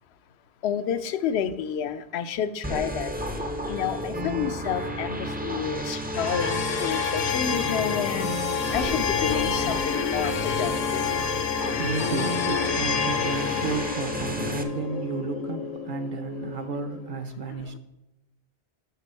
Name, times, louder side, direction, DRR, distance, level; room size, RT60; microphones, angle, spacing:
voice 1, 0.6-3.1 3.7-8.3 8.7-11.0 17.5-17.8, left 8 dB, 75° left, 13 dB, 0.8 m, -30 dB
sound 1, 2.6-14.6, equal, 15° right, 0.4 m, -32 dB
sound 2, 6.1-17.2, left 6 dB, 50° left, 0.5 m, -29 dB
voice 2, 11.8-17.7, right 4 dB, 55° right, 8 dB, 0.7 m, -32 dB
6.9 x 5.9 x 5.4 m, 0.94 s
omnidirectional pair, 1.1 m